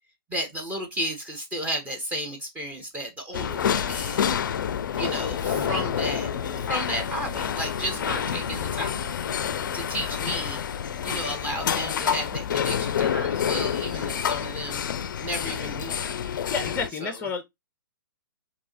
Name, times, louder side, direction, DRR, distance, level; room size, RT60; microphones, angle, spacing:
voice 1, 0.3-4.2 5.0-6.3 6.7-9.1 9.7-10.6 11.0-14.8 15.2-16.1 17.0-17.1, equal, 10° right, 0.9 m, -33 dB
sound 1, 3.3-16.9, left 8 dB, 55° left, 0.4 m, -28 dB
sound 2, 4.5-11.9, right 1 dB, 30° right, 1.4 m, -47 dB
voice 2, 5.5-5.8 16.5-17.4, left 4 dB, 10° left, 0.6 m, -31 dB
4.5 x 2.9 x 2.7 m
figure-of-eight pair, 120°, 12 cm